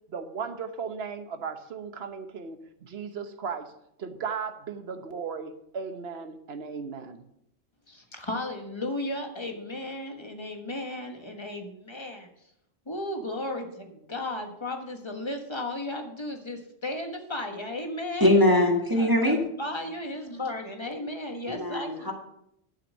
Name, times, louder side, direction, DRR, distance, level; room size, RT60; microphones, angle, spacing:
voice 1, 0.1-3.7 4.0-7.2, right 6 dB, 55° right, 9 dB, 1.2 m, -36 dB
voice 2, 7.9-12.3 12.9-18.3 18.9-22.1, left 1 dB, 20° left, 4 dB, 1.4 m, -35 dB
voice 3, 18.2-19.4 21.5-22.1, left 1 dB, 15° right, 0 dB, 1.6 m, -22 dB
11.5 x 5.9 x 6.4 m, 0.77 s
omnidirectional pair, 1.3 m